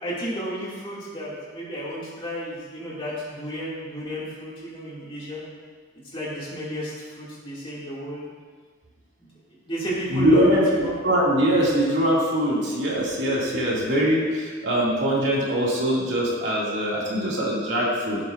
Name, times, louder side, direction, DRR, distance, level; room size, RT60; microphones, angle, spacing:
voice 1, 0.0-5.4 6.1-8.2 9.2-9.3 9.6-11.0, equal, 25° left, -7 dB, 2.5 m, -32 dB
voice 2, 10.1-10.6 11.0-18.2, equal, 60° right, -6 dB, 2.5 m, -22 dB
16.0 x 7.5 x 2.6 m, 1.5 s
head